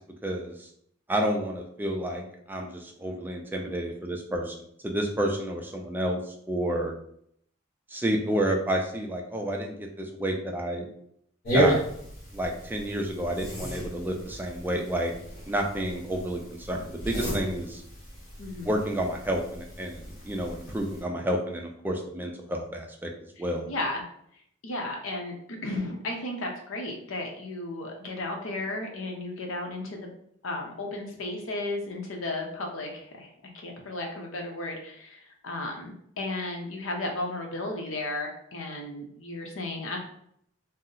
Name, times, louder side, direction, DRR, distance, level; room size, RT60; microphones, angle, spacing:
voice 1, 0.2-0.7 1.1-4.6 4.8-6.9 7.9-10.9 11.5-11.8 12.3-15.1 15.5-17.8 18.6-23.1 23.4-23.7, right 1 dB, 10° right, 1 dB, 0.4 m, -30 dB
sound 1, 11.4-21.0, right 1 dB, 50° left, 1.1 m, -33 dB
voice 2, 18.4-18.8 23.4-24.0 24.6-25.4 25.6-30.1 30.4-33.3 33.5-40.0, left 2 dB, 75° left, 2 dB, 0.7 m, -34 dB
2.7 x 2.0 x 3.8 m, 0.69 s
head